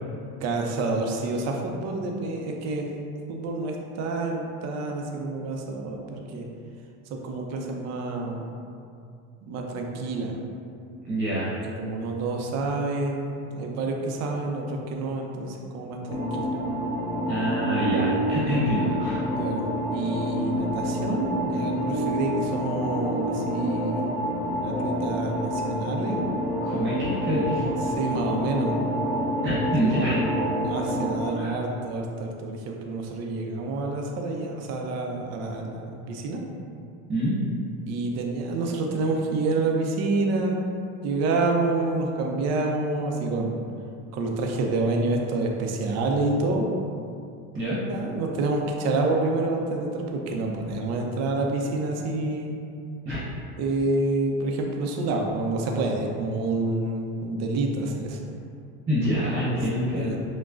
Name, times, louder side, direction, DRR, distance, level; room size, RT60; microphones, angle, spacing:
voice 1, 0.4-2.9 3.3-6.5 7.1-8.4 9.5-10.3 11.8-16.5 19.4-19.6 19.9-24.1 24.6-26.2 27.8-28.8 29.5-29.6 30.0-36.4 37.9-40.6 41.0-43.6 44.1-46.7 47.9-52.6 53.6-58.2 59.5-60.2, right 2 dB, 50° right, 1 dB, 0.6 m, -28 dB
voice 2, 11.0-11.6 17.3-19.2 26.6-27.7 29.4-30.2 31.4-31.5 37.1-37.4 47.5-47.8 53.0-53.2 58.9-60.2, equal, 25° right, -8 dB, 1.1 m, -26 dB
sound 1, 16.1-31.3, equal, 50° left, 1.4 m, -28 dB
6.0 x 2.2 x 2.5 m, 2.4 s
supercardioid pair, 120°, 34 cm